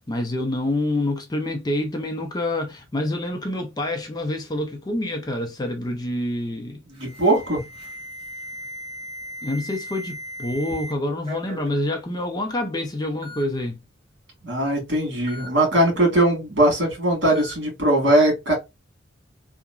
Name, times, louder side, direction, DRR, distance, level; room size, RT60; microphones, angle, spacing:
voice 1, 0.1-6.8 9.4-13.8, left 1 dB, 20° left, 0.4 m, -27 dB
Alarm, 6.9-10.9 11.2-11.7 12.5-12.6 13.2-13.4 15.3-15.5 17.3-17.5, left 1 dB, 25° right, 1.2 m, -37 dB
voice 2, 6.9-7.6 14.4-18.5, right 1 dB, 60° right, 1.6 m, -20 dB
2.9 x 2.4 x 2.3 m
head